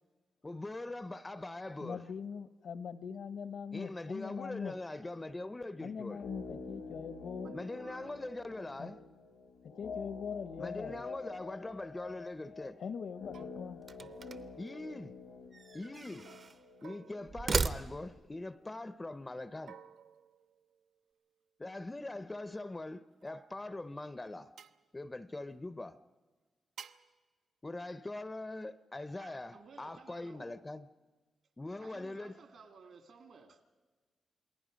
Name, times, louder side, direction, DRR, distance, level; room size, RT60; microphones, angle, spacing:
voice 1, 0.4-2.0 3.7-6.2 7.5-9.0 10.6-12.8 14.6-15.2 15.7-16.3 16.8-19.8 21.6-24.5 24.9-26.0 27.6-30.9 31.6-32.3, left 2 dB, 15° left, 0.5 m, -42 dB
voice 2, 1.8-4.7 5.8-7.5 8.8-8.9 9.8-11.0 12.8-13.8, left 6 dB, 65° left, 0.8 m, -42 dB
sound 1, 6.1-18.2 18.5-18.6, left 4 dB, 85° left, 1.5 m, -47 dB
voice 3, 7.4-8.2 29.2-30.6 31.8-33.6, right 5 dB, 65° right, 2.1 m, -56 dB
sound 2, 12.7-12.9 13.3-13.6 14.0-15.4 16.2-18.5 19.7-21.1 22.6-23.8 24.6-24.8 26.8-27.2, right 7 dB, 90° right, 0.6 m, -56 dB
sound 3, 13.8-14.6 15.5-16.6 17.3-18.3, right 4 dB, 35° right, 0.7 m, -36 dB
28.5 x 20.0 x 5.1 m
wide cardioid pair, 145°, 0 cm